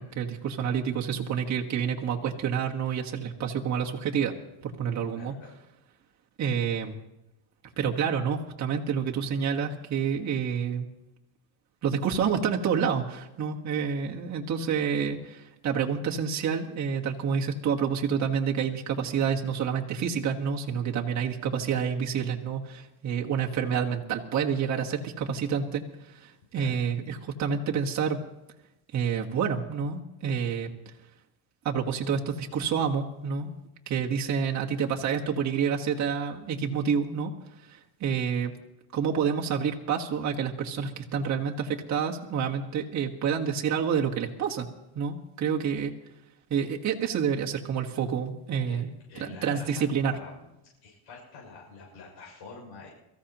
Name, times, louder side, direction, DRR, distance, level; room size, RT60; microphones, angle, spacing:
voice 1, 0.0-4.3 4.6-5.3 6.4-7.0 7.8-10.9 11.8-28.2 28.9-30.7 31.6-33.5 33.9-37.3 37.7-38.5 38.9-44.7 44.9-45.9 46.5-48.9 49.2-50.1, right 7 dB, 40° right, 0 dB, 1.5 m, -28 dB
voice 2, 5.1-5.6 26.5-26.8 48.7-48.8 49.1-50.5 50.8-52.9, left 4 dB, 75° left, -4 dB, 6.6 m, -46 dB
23.0 x 14.5 x 3.0 m, 0.90 s
cardioid pair, 130°, 42 cm